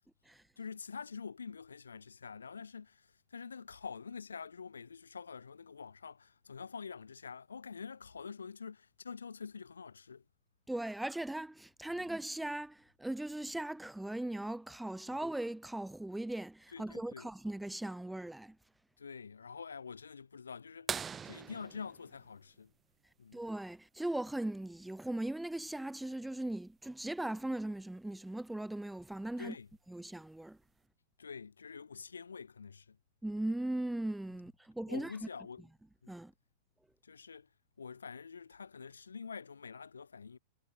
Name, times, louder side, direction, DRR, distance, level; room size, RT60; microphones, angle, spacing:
voice 1, 0.6-10.2 11.9-12.1 15.1-15.2 16.7-17.3 19.0-22.7 23.2-23.4 29.4-29.7 31.2-33.0 34.9-35.7 36.0-36.1 37.0-37.5 37.8-40.4, left 5 dB, 80° left, 3.1 m, -46 dB
voice 2, 10.7-18.6 23.3-29.5 29.9-30.6 33.2-35.1 36.1-36.3, right 1 dB, 5° right, 0.7 m, -39 dB
sound 1, 20.9-23.3 25.3-25.4 27.6-27.7 29.4-29.7 30.5-30.6, right 7 dB, 20° right, 2.2 m, -42 dB
figure-of-eight pair, 95°, 0 cm